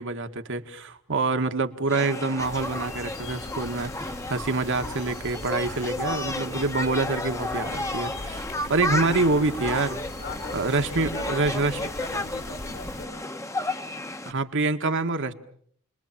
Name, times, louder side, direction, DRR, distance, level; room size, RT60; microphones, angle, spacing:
voice 1, 0.0-10.0 10.5-11.8 14.3-15.3, right 3 dB, 60° right, 7 dB, 1.7 m, -26 dB
sound 1, 1.9-14.3, left 2 dB, 15° left, 1.2 m, -33 dB
sound 2, 2.4-13.1, left 1 dB, 80° left, 4.6 m, -41 dB
voice 2, 8.8-9.7 10.1-13.3, left 2 dB, 55° left, 8 dB, 2.5 m, -41 dB
30.0 x 22.0 x 7.4 m, 0.63 s
head